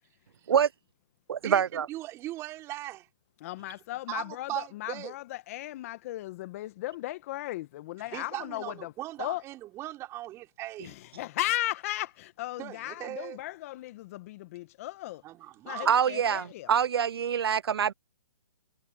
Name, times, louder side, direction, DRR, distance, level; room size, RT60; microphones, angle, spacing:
voice 1, 1.3-1.9 15.9-17.9, right 8 dB, 75° right, 0.4 m, -25 dB
voice 2, 1.9-3.1 4.1-5.1 8.1-10.9 12.6-13.4 15.2-15.9, right 15 dB, 20° right, 5.1 m, -39 dB
voice 3, 3.4-8.9 9.2-9.4 10.8-15.2 15.6-16.8, left 16 dB, 35° left, 1.3 m, -36 dB
hypercardioid pair, 145°, 13 cm